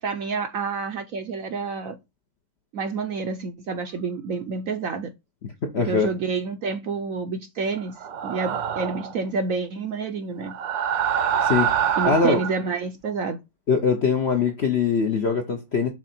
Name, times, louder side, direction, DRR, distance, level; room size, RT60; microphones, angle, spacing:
voice 1, 0.0-2.0 2.7-5.1 5.8-8.0 8.2-10.6 12.0-13.4, right 4 dB, 65° right, 0.9 m, -28 dB
voice 2, 5.6-6.1 11.4-11.7 12.0-12.4 13.7-15.9, left 5 dB, 55° left, 0.7 m, -22 dB
sound 1, 8.0-9.2 10.4-12.6, right 8 dB, 80° right, 1.5 m, -25 dB
6.2 x 3.9 x 4.3 m
omnidirectional pair, 2.0 m